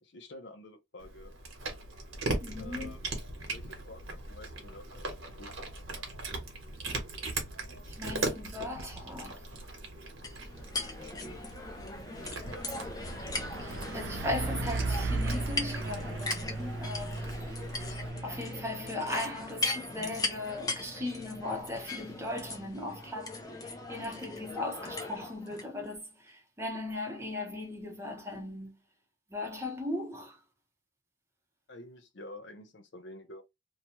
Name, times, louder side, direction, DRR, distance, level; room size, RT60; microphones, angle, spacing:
voice 1, 0.0-1.3 2.6-3.0 3.4-5.5 31.7-33.4, left 1 dB, 60° left, 0.7 m, -49 dB
Cat, 1.0-18.1, right 2 dB, 85° right, 1.1 m, -40 dB
voice 2, 2.4-3.0 7.9-9.4 13.6-17.3 18.2-28.8 29.3-30.4, left 1 dB, 15° right, 0.7 m, -38 dB
sound 1, 10.2-25.7, left 3 dB, 20° left, 0.4 m, -39 dB
Truck, 10.2-24.5, right 2 dB, 60° right, 0.4 m, -39 dB
2.8 x 2.2 x 2.9 m
head